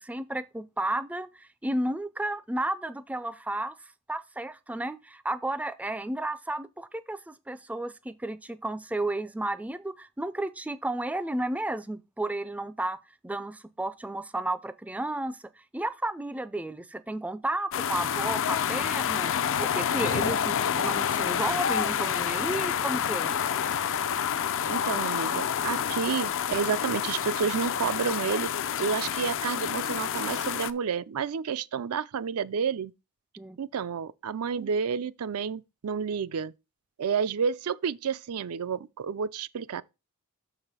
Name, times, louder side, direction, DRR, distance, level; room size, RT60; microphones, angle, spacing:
voice 1, 0.0-3.7 4.1-13.0 13.2-15.4 15.7-23.5 33.4-33.6, right 1 dB, 5° right, 0.4 m, -33 dB
sound 1, 17.7-30.7, left 8 dB, 60° left, 0.5 m, -28 dB
voice 2, 24.7-28.5 28.8-32.9 33.6-36.5 37.0-39.8, right 6 dB, 75° right, 0.4 m, -30 dB
6.6 x 4.9 x 5.5 m
head